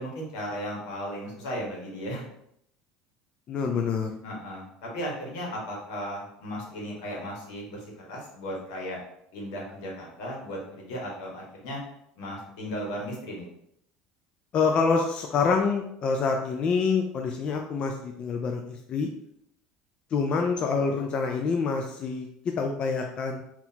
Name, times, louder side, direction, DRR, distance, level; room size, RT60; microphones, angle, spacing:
voice 1, 0.0-2.3 4.2-9.0 9.3-11.8 12.2-13.5, equal, 80° left, -2 dB, 1.5 m, -36 dB
voice 2, 3.5-4.1 14.5-19.1 20.1-22.3 22.6-23.4, left 5 dB, 40° left, 2 dB, 0.4 m, -26 dB
3.9 x 2.9 x 2.9 m, 0.74 s
supercardioid pair, 115°, 3 cm